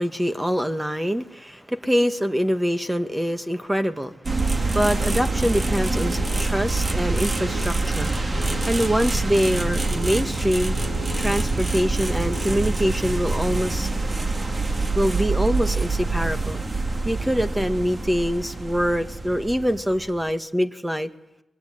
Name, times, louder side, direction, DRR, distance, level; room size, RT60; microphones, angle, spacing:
voice 1, 0.0-4.1 4.7-8.1 8.7-10.8 11.2-13.9 14.9-16.6 17.0-21.1, equal, 10° right, 9 dB, 1.9 m, -24 dB
sound 1, 4.2-20.3, right 3 dB, 35° right, 2.3 m, -25 dB
sound 2, 4.3-13.0, right 2 dB, 65° right, 5.9 m, -36 dB
23.5 x 22.0 x 9.7 m, 0.90 s
cardioid pair, 65°, 0 cm